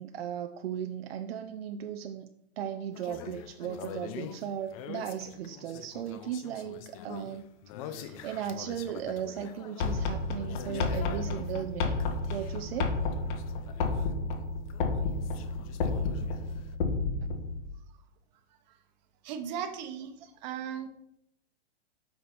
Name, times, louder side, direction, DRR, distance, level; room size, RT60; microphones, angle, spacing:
voice 1, 0.0-2.3 2.6-7.5 7.8-12.0 12.3-13.0 20.2-20.3, right 9 dB, 65° right, 7 dB, 0.7 m, -37 dB
sound 1, 2.9-14.4 14.7-16.7, left 9 dB, 35° left, 0.6 m, -45 dB
sound 2, 9.8-17.6, left 3 dB, 50° left, 1.4 m, -31 dB
voice 2, 19.2-20.1 20.4-20.9, right 8 dB, 40° right, 7 dB, 1.1 m, -36 dB
8.4 x 5.9 x 4.4 m, 0.79 s
hypercardioid pair, 140°, 33 cm